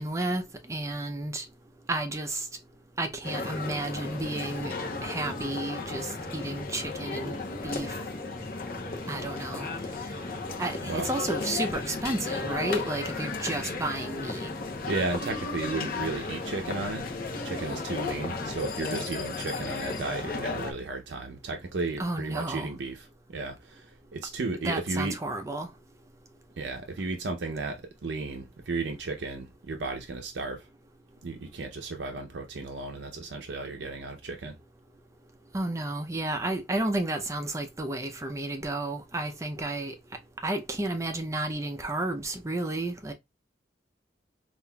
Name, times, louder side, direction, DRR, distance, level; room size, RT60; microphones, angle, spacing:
voice 1, 0.0-1.5 1.9-2.5 3.0-4.7 5.0-7.4 7.6-8.0 9.1-9.7 10.6-14.5 22.0-22.7 24.6-25.7 35.5-39.9 40.4-43.1, right 2 dB, 15° right, 0.4 m, -32 dB
sound 1, 3.2-20.7, left 3 dB, 55° left, 0.8 m, -34 dB
voice 2, 14.9-17.0 17.4-25.1 26.6-30.7 31.2-34.6, right 3 dB, 85° right, 0.6 m, -34 dB
5.5 x 2.5 x 2.2 m
head